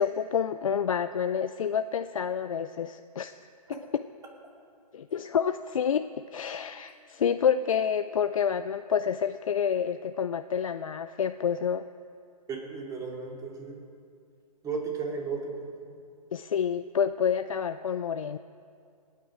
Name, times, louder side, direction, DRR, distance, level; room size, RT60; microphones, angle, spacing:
voice 1, 0.0-3.4 3.9-4.0 4.9-11.9 16.3-18.4, left 7 dB, 60° left, 11 dB, 0.5 m, -28 dB
voice 2, 12.5-13.8 14.6-16.0, right 5 dB, 15° right, 0 dB, 2.6 m, -35 dB
27.0 x 9.4 x 4.9 m, 2.4 s
figure-of-eight pair, 120°, 20 cm